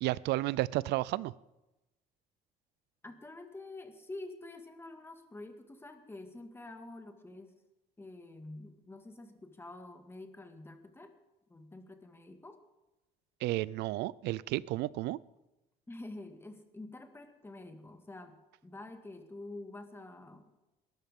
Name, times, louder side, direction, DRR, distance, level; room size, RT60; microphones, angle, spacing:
voice 1, 0.0-1.3 13.4-15.2, right 18 dB, 85° right, 21 dB, 0.5 m, -32 dB
voice 2, 3.0-7.5 8.0-11.1 11.5-12.6 15.9-20.4, left 2 dB, 15° left, 6 dB, 1.9 m, -47 dB
21.5 x 13.0 x 3.7 m, 1.0 s
cardioid pair, 110°, 17 cm